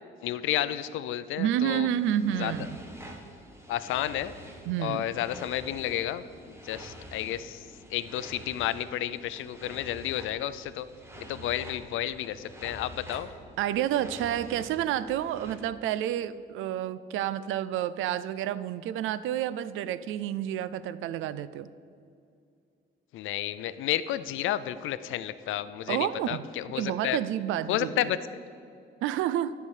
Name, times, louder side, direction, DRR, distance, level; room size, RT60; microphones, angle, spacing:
voice 1, 0.2-1.9 2.4-2.5 3.7-4.3 4.8-7.6 7.9-10.9 11.2-13.3 23.1-27.2 27.7-28.2, left 12 dB, 85° left, 14 dB, 0.5 m, -31 dB
voice 2, 1.4-2.8 4.7-5.0 13.6-21.7 25.9-26.5 26.8-28.1 29.0-29.5, right 11 dB, 85° right, 16 dB, 0.4 m, -29 dB
sound 1, 1.9-15.6, right 1 dB, 15° right, 1.4 m, -47 dB
11.0 x 5.8 x 8.2 m, 2.4 s
cardioid pair, 90°, 20 cm